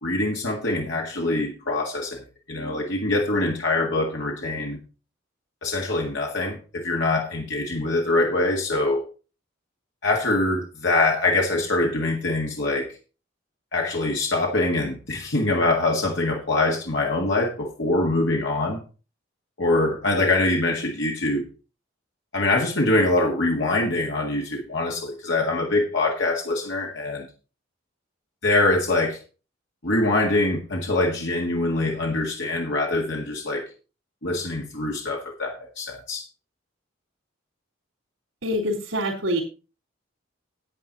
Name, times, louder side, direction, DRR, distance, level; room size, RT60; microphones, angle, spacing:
voice 1, 0.0-2.2 2.5-4.8 5.6-9.1 10.0-12.9 13.7-18.8 19.6-21.5 22.3-27.3 28.4-29.2 29.8-33.7 34.2-36.2, left 2 dB, 60° left, -1 dB, 1.8 m, -24 dB
voice 2, 38.4-39.4, equal, 85° right, -5 dB, 3.5 m, -25 dB
11.0 x 9.1 x 4.1 m, 0.34 s
head